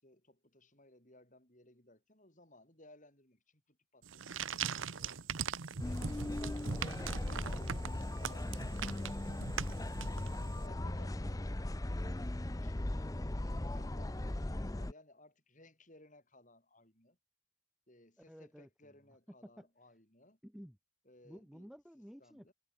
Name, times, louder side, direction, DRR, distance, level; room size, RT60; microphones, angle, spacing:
voice 1, 0.0-7.2 8.2-9.9 10.4-11.7 12.2-13.1 13.6-17.2 17.9-20.4 21.1-21.7 22.2-22.5, left 1 dB, 40° left, 6.7 m, -62 dB
sound 1, 4.0-10.6, right 6 dB, 70° right, 1.0 m, -41 dB
sound 2, 5.8-14.9, left 1 dB, 15° left, 0.6 m, -38 dB
voice 2, 6.9-7.6 18.3-18.7 19.4-19.7 20.4-20.8 21.2-22.5, equal, ahead, 1.0 m, -53 dB
head